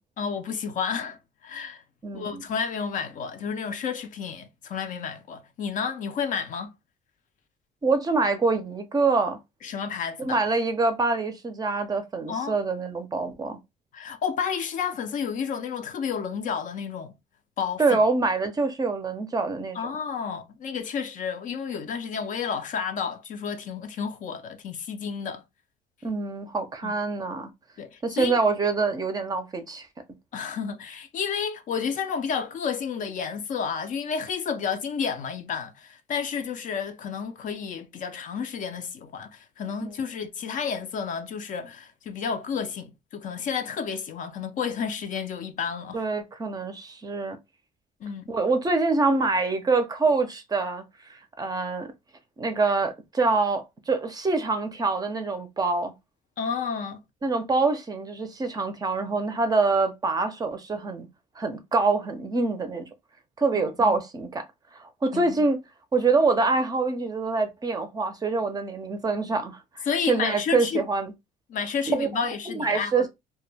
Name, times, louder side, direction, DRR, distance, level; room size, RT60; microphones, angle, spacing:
voice 1, 0.2-1.8 2.1-6.7 9.6-10.4 12.3-12.5 13.9-17.1 17.6-18.0 19.7-25.4 26.8-26.9 27.8-28.4 30.3-46.0 48.0-48.3 56.4-57.0 63.8-64.0 65.1-65.4 69.9-70.9 71.5-73.1, left 6 dB, 50° left, 0.4 m, -31 dB
voice 2, 2.0-2.5 7.8-9.4 10.2-13.6 17.8-19.9 26.0-27.5 28.0-29.9 39.8-39.9 45.9-47.4 48.3-50.8 51.4-51.9 52.4-55.9 57.2-61.1 61.4-62.9 63.4-64.4 64.8-65.6 65.9-71.1 71.9-72.1 72.5-73.1, right 3 dB, 20° right, 0.5 m, -25 dB
2.2 x 2.1 x 3.1 m
cardioid pair, 110°, 17 cm